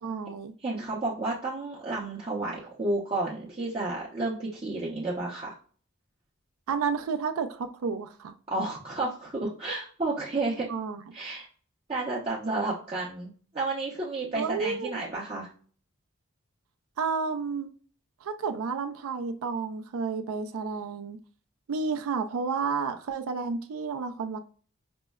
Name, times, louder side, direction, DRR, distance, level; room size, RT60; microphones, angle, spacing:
voice 1, 0.0-0.5 6.7-8.3 10.7-11.1 14.3-15.1 17.0-17.7 18.2-21.2 21.7-24.4, right 5 dB, 90° right, 7 dB, 0.4 m, -31 dB
voice 2, 0.6-5.5 8.5-10.7 11.1-11.5 11.9-13.3 13.5-15.5, right 2 dB, 25° right, -5 dB, 0.6 m, -31 dB
5.1 x 2.1 x 2.2 m, 0.43 s
head